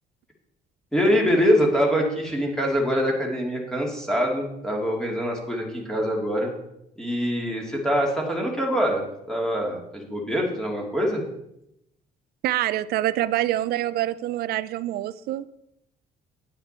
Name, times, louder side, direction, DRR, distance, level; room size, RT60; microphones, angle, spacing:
voice 1, 0.9-6.5 7.0-11.2, equal, 5° left, -1 dB, 2.8 m, -24 dB
voice 2, 12.4-15.6, right 14 dB, 65° right, 15 dB, 0.5 m, -26 dB
10.0 x 8.9 x 4.4 m, 0.81 s
cardioid pair, 110°, 17 cm